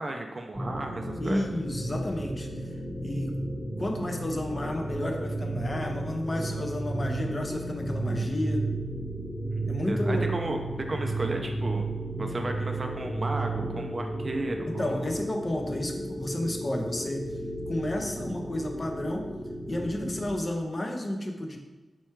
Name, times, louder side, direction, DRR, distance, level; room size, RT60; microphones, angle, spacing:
voice 1, 0.0-1.5 9.9-10.6 10.9-11.8 12.2-15.1, right 2 dB, 35° right, 3 dB, 0.4 m, -34 dB
sound 1, 0.5-20.3, right 2 dB, 5° right, 1.0 m, -33 dB
voice 2, 1.2-2.6 3.0-3.3 3.8-8.7 9.6-10.3 14.7-17.3 17.7-19.3 19.7-21.6, left 1 dB, 30° left, 3 dB, 0.5 m, -31 dB
4.4 x 2.3 x 4.4 m, 1.2 s
wide cardioid pair, 105°, 0 cm